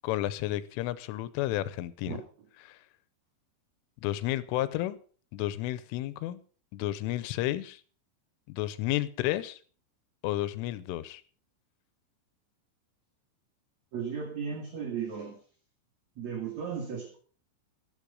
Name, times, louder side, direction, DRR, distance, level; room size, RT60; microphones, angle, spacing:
voice 1, 0.0-2.2 2.7-2.8 4.0-5.0 5.3-6.4 6.7-7.8 8.5-9.6 10.2-11.2, left 15 dB, 85° left, 16 dB, 3.3 m, -31 dB
voice 2, 13.9-15.4 16.2-17.2, right 6 dB, 45° right, -1 dB, 3.2 m, -35 dB
13.5 x 12.5 x 5.4 m, 0.40 s
omnidirectional pair, 5.6 m